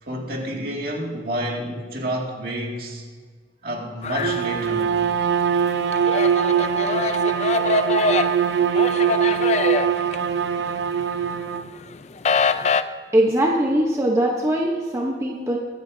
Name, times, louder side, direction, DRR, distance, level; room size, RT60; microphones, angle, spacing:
voice 1, 0.0-3.0 3.6-4.9, right 1 dB, 55° right, -1 dB, 2.2 m, -29 dB
sound 1, 4.0-5.1 5.4-10.9 11.2-12.8, left 4 dB, 40° left, 0.4 m, -24 dB
Bowed string instrument, 4.1-11.7, right 7 dB, 80° right, 0.5 m, -22 dB
voice 2, 13.1-15.6, right 1 dB, 15° right, -1 dB, 0.9 m, -21 dB
23.0 x 9.2 x 2.7 m, 1.5 s
head